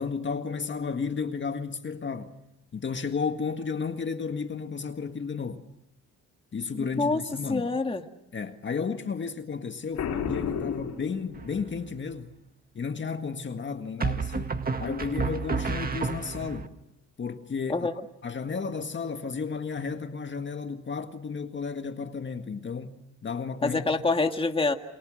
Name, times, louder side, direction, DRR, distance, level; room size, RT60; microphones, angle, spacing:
voice 1, 0.0-2.4 2.7-5.6 6.5-7.7 8.3-12.3 12.7-16.7 17.2-17.9 18.2-24.1, left 5 dB, 40° left, 1.9 m, -33 dB
voice 2, 6.7-7.2 7.5-8.0 17.7-17.9 23.6-24.7, left 3 dB, 20° left, 1.9 m, -26 dB
Boom, 10.0-11.8, left 7 dB, 75° left, 4.3 m, -32 dB
sound 1, 11.3-11.9 14.0-16.7, right 4 dB, 30° right, 2.0 m, -31 dB
28.5 x 27.0 x 6.5 m
cardioid pair, 90°, 30 cm